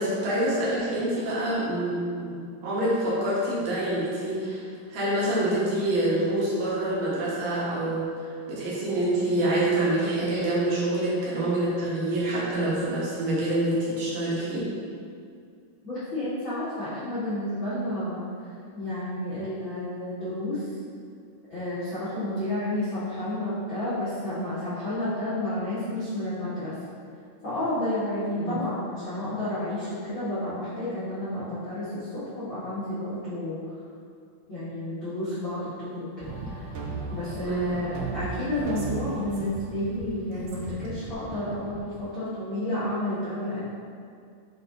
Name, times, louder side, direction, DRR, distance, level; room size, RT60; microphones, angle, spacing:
voice 1, 0.0-4.6 4.9-8.1 8.5-14.7 28.4-28.5 37.4-37.9, right 1 dB, 65° right, -8 dB, 2.8 m, -26 dB
voice 2, 15.8-18.3 18.7-20.7 21.5-26.8 27.4-33.6 34.5-36.7 37.1-43.6, left 1 dB, 75° left, -13 dB, 1.1 m, -31 dB
sound 1, 36.2-42.0, right 3 dB, 85° right, 1.8 m, -36 dB
7.8 x 3.9 x 3.9 m, 2.3 s
omnidirectional pair, 4.8 m